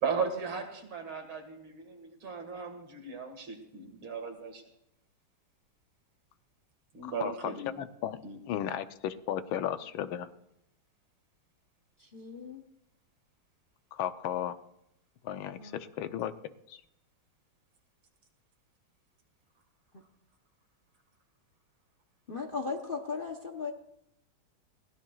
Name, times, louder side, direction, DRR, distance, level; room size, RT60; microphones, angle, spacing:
voice 1, 0.0-4.6 6.9-7.7 8.2-8.4, right 5 dB, 80° right, 5 dB, 2.7 m, -36 dB
voice 2, 7.2-8.2 8.5-10.3 13.9-14.5 15.2-16.3, left 10 dB, 85° left, 11 dB, 1.5 m, -34 dB
voice 3, 12.1-12.6 15.6-15.7 22.3-23.7, left 4 dB, 40° left, 4 dB, 0.8 m, -36 dB
21.5 x 16.5 x 2.4 m, 0.80 s
omnidirectional pair, 2.2 m